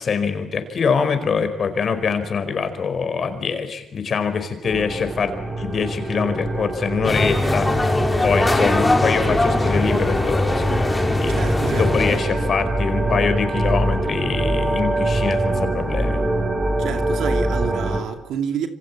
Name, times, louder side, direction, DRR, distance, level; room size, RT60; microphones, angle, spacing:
voice 1, 0.0-7.7 8.2-10.7 11.2-11.3 11.7-16.2, left 5 dB, 50° left, 4.7 m, -24 dB
sound 1, 4.6-18.0, right 1 dB, 25° right, 4.6 m, -24 dB
sound 2, 7.0-12.2, left 2 dB, 15° left, 3.2 m, -21 dB
voice 2, 11.3-12.5 16.8-18.7, right 8 dB, 80° right, 2.5 m, -29 dB
27.0 x 25.5 x 8.6 m
cardioid pair, 90°, 0 cm